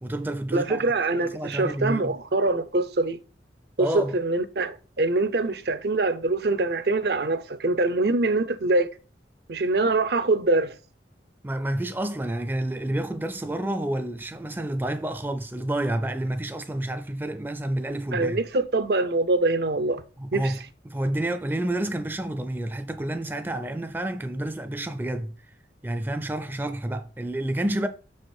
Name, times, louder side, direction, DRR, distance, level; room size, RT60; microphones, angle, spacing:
voice 1, 0.0-0.8 1.2-2.1 3.8-4.2 11.4-18.4 20.2-25.3 25.8-27.9, right 1 dB, 10° right, 0.4 m, -29 dB
voice 2, 0.5-3.2 3.8-8.9 9.5-10.7 18.1-20.0 20.3-20.5, right 2 dB, 60° right, 0.6 m, -24 dB
6.0 x 4.8 x 4.4 m
head